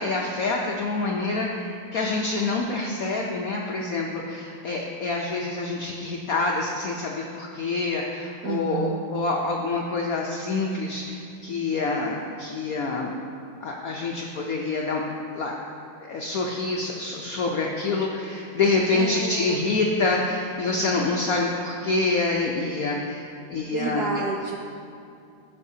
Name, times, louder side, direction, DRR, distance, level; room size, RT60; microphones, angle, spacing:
voice 1, 0.0-13.1 13.6-15.0 15.4-15.5 16.0-24.0, left 3 dB, 80° left, 0 dB, 0.7 m, -26 dB
voice 2, 8.4-9.0 18.9-19.7 23.7-24.6, right 4 dB, 85° right, 1 dB, 0.9 m, -30 dB
14.0 x 6.5 x 2.7 m, 2.5 s
omnidirectional pair, 2.3 m